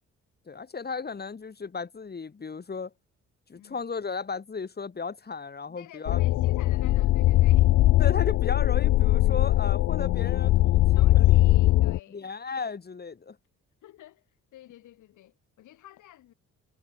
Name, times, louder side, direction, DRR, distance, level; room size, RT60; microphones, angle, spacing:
voice 1, 0.5-2.9 3.5-6.2 8.0-11.4 12.1-13.4, left 5 dB, 30° left, 3.2 m, -35 dB
voice 2, 5.7-7.7 10.9-12.3 13.8-16.3, left 14 dB, 80° left, 3.2 m, -51 dB
sound 1, 6.1-12.0, left 15 dB, 60° left, 0.4 m, -21 dB
cardioid pair, 90°, 30 cm